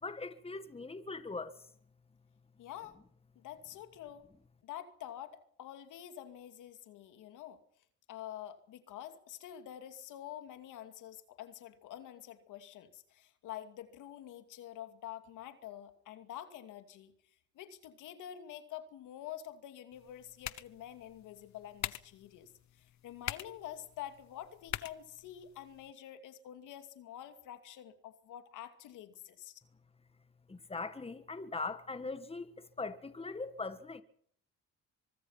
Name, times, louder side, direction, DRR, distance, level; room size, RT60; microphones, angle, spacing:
voice 1, 0.0-1.5 30.5-34.0, left 3 dB, 20° left, 1.8 m, -41 dB
voice 2, 2.6-3.0 3.4-4.3 4.6-7.6 8.1-17.1 17.5-22.5 22.8-29.6, left 11 dB, 90° left, 2.6 m, -47 dB
sound 1, 19.9-25.9, left 12 dB, 65° left, 1.1 m, -45 dB
25.0 x 22.0 x 5.8 m
cardioid pair, 90°, 30 cm